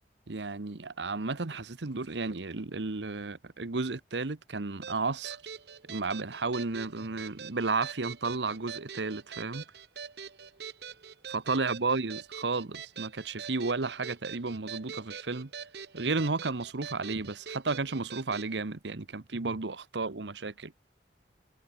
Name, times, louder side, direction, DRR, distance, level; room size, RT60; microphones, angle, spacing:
voice 1, 0.3-5.4 5.9-9.6 11.3-15.5 15.9-20.7, right 3 dB, 85° right, 1.1 m, -33 dB
sound 1, 4.8-18.5, right 7 dB, 65° right, 1.2 m, -44 dB
head